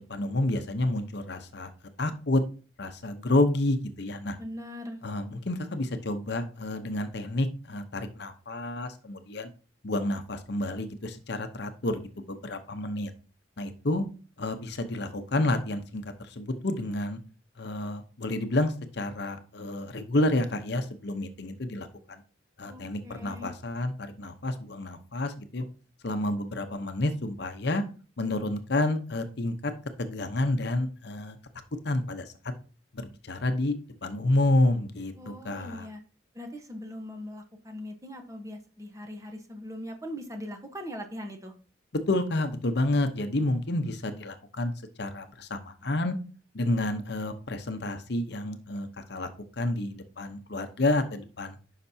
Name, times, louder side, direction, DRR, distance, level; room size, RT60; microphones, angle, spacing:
voice 1, 0.0-1.7 2.0-2.4 2.8-4.4 5.0-9.5 9.8-13.1 13.6-14.0 14.4-17.2 17.6-22.2 22.6-25.6 26.0-27.8 28.2-29.7 30.0-31.4 31.8-32.2 32.9-33.8 34.0-35.9 41.9-44.7 45.0-46.2 46.5-49.3 49.6-51.6, left 2 dB, 55° left, 8 dB, 0.8 m, -29 dB
voice 2, 4.4-5.0 22.6-23.5 35.2-36.0 36.3-41.5, equal, 15° right, 5 dB, 1.0 m, -40 dB
9.9 x 5.8 x 2.7 m, 0.36 s
head